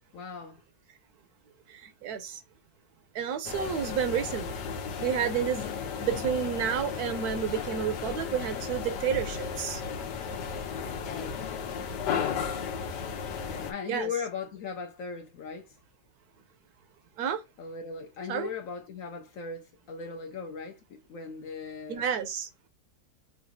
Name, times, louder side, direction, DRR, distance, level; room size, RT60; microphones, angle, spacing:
voice 1, 0.1-0.6 11.0-11.5 13.4-15.8 17.6-22.0, left 5 dB, 65° left, 0.8 m, -38 dB
voice 2, 1.7-2.4 3.1-4.5 5.0-5.7 6.0-9.8 13.9-14.1 17.2-17.4 18.3-18.5 21.9-22.5, right 8 dB, 70° right, 1.1 m, -30 dB
sound 1, 3.4-13.7, left 6 dB, 90° left, 1.4 m, -34 dB
5.8 x 2.4 x 2.6 m
omnidirectional pair, 1.8 m